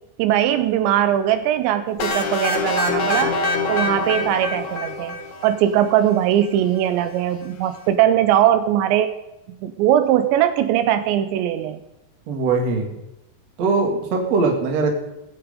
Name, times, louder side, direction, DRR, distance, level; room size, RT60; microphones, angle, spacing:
voice 1, 0.2-3.3 3.7-5.2 5.4-9.1 9.6-11.8, right 11 dB, 85° right, 10 dB, 3.0 m, -20 dB
sound 1, 2.0-5.8, left 3 dB, 55° left, 1.9 m, -24 dB
voice 2, 12.3-13.0 13.6-14.9, right 4 dB, 45° right, 2 dB, 2.5 m, -21 dB
18.5 x 8.0 x 5.2 m, 0.92 s
omnidirectional pair, 5.2 m